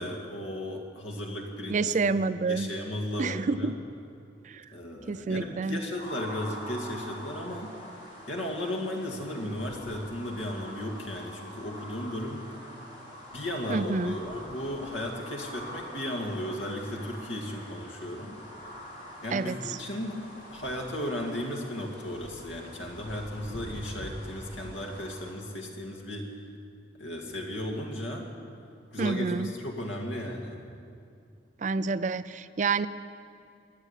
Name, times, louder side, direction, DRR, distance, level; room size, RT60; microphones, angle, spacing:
voice 1, 0.0-2.1 2.4-3.7 4.7-7.8 8.3-12.5 13.3-18.4 19.2-26.3 27.0-28.3 28.9-30.6, left 1 dB, 85° left, 1 dB, 2.1 m, -35 dB
voice 2, 1.7-2.7 3.2-3.7 4.5-4.6 5.1-5.8 13.7-14.1 19.3-19.8 29.0-29.5 31.6-32.9, right 4 dB, 40° right, 12 dB, 0.4 m, -28 dB
sound 1, 6.0-25.3, equal, 40° left, 3.3 m, -44 dB
14.5 x 8.6 x 9.9 m, 2.5 s
head